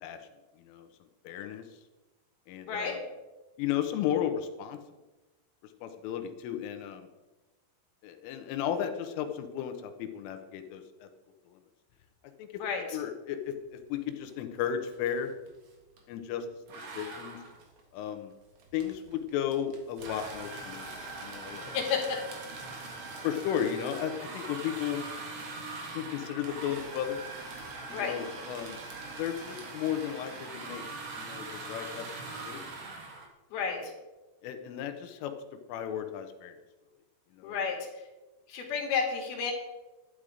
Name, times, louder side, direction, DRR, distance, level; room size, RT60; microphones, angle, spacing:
voice 1, 1.3-1.6 2.5-3.0 3.6-4.8 5.8-7.1 8.0-11.1 11.5-11.6 12.4-15.3 16.1-16.5 17.0-17.4 17.9-18.3 18.7-21.9 23.2-25.0 26.0-27.2 27.9-28.8 29.2-30.8 31.2-32.1 32.4-32.6 33.6-33.8 34.4-35.3 35.7-36.5 37.4-37.8, left 9 dB, 80° left, 7 dB, 3.5 m, -34 dB
voice 2, 12.6-13.0 21.7-22.0 27.9-28.1 33.5-33.8 37.4-37.8 38.5-39.5, left 6 dB, 55° left, 1 dB, 3.4 m, -31 dB
sound 1, 14.3-14.6 14.8-16.1 16.7-33.3, right 3 dB, 60° right, 1.9 m, -42 dB
12.0 x 11.0 x 5.0 m, 1.1 s
omnidirectional pair, 5.8 m